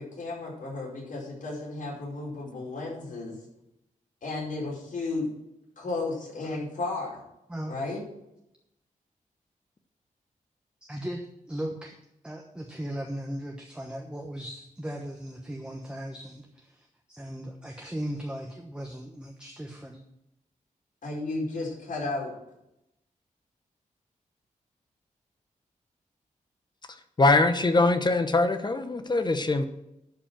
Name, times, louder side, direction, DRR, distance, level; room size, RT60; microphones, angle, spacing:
voice 1, 0.0-3.4 4.2-5.3 5.8-7.2 7.7-8.0 21.0-22.3, left 3 dB, 75° left, -4 dB, 5.0 m, -33 dB
voice 2, 10.9-12.0 12.2-20.0, right 1 dB, 5° right, 2 dB, 1.1 m, -37 dB
voice 3, 27.2-29.6, left 2 dB, 30° left, 9 dB, 0.9 m, -22 dB
11.5 x 5.4 x 7.4 m, 0.85 s
wide cardioid pair, 120°, 14 cm